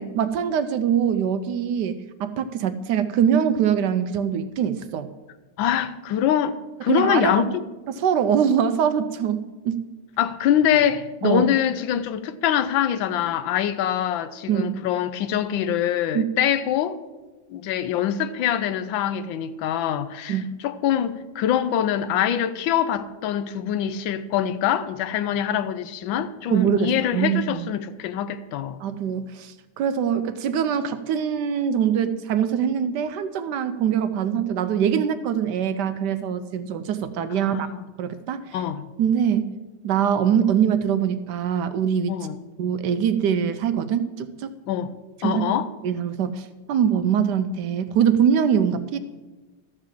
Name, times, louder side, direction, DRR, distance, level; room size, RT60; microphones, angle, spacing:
voice 1, 0.0-5.1 6.9-7.4 7.9-9.9 11.2-11.5 14.5-14.8 16.1-16.2 20.3-20.4 26.5-27.7 28.8-37.7 38.0-38.6 39.0-39.5 39.8-42.1 42.6-44.5 45.2-45.4 45.8-49.0, right 8 dB, 75° right, 1.1 m, -23 dB
voice 2, 5.6-7.6 10.2-17.0 17.5-28.8 37.3-37.8 38.5-38.9 42.1-42.4 44.7-44.9 45.2-45.7, left 10 dB, 85° left, 1.4 m, -24 dB
13.0 x 4.8 x 7.4 m
omnidirectional pair, 2.1 m